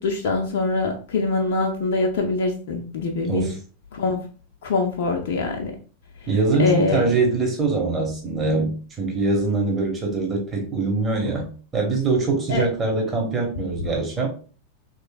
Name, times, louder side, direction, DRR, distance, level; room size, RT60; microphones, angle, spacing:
voice 1, 0.0-3.5 3.9-4.2 4.6-5.7 6.6-7.1 12.5-12.7, left 3 dB, 55° left, 1 dB, 0.5 m, -23 dB
voice 2, 3.3-3.6 6.3-14.3, right 3 dB, 20° right, 0 dB, 1.1 m, -23 dB
3.1 x 3.0 x 2.3 m, 0.39 s
figure-of-eight pair, 90°, 0 cm